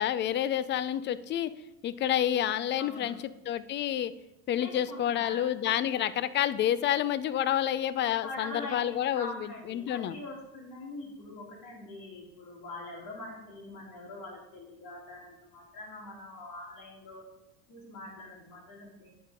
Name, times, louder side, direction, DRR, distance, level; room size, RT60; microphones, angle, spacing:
voice 1, 0.0-1.5 1.8-3.2 3.5-4.1 4.5-9.3 9.7-10.1, left 11 dB, 25° left, 15 dB, 0.3 m, -29 dB
voice 2, 2.8-3.2 4.6-5.5 8.2-17.2 17.7-19.1, left 2 dB, 45° left, -2 dB, 3.5 m, -43 dB
9.6 x 4.9 x 5.0 m, 0.90 s
supercardioid pair, 100°, 46 cm